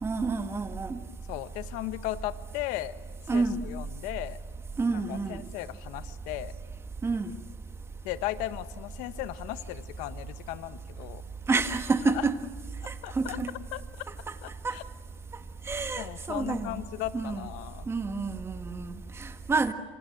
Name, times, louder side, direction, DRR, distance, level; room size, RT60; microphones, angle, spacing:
voice 1, 0.0-1.0 3.3-3.6 4.8-5.4 7.0-7.3 11.5-12.3 12.9-13.5 14.3-14.4 14.6-14.7 15.7-16.8 17.1-17.5 17.9-19.7, right 4 dB, 20° right, 8 dB, 1.7 m, -29 dB
voice 2, 1.3-2.9 3.3-4.4 4.9-6.5 8.0-11.2 12.0-12.2 13.0-13.4 13.7-14.1 14.4-14.8 16.0-17.9, left 16 dB, 70° left, 12 dB, 1.3 m, -36 dB
27.0 x 26.5 x 7.8 m, 1.4 s
supercardioid pair, 120°, 13 cm